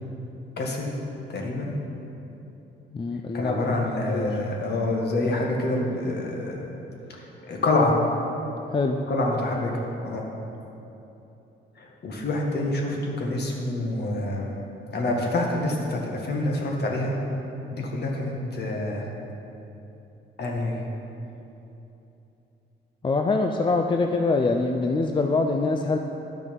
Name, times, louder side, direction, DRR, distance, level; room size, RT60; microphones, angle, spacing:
voice 1, 0.6-1.0 1.3-1.7 3.3-6.7 7.1-8.0 9.1-10.2 11.8-14.5 14.9-17.2 17.7-19.1 20.4-20.8, left 2 dB, 55° left, 0 dB, 1.7 m, -27 dB
voice 2, 2.9-4.3 8.7-9.0 23.0-26.0, left 3 dB, 25° left, 4 dB, 0.5 m, -24 dB
10.5 x 6.1 x 5.4 m, 3.0 s
cardioid pair, 90°, 20 cm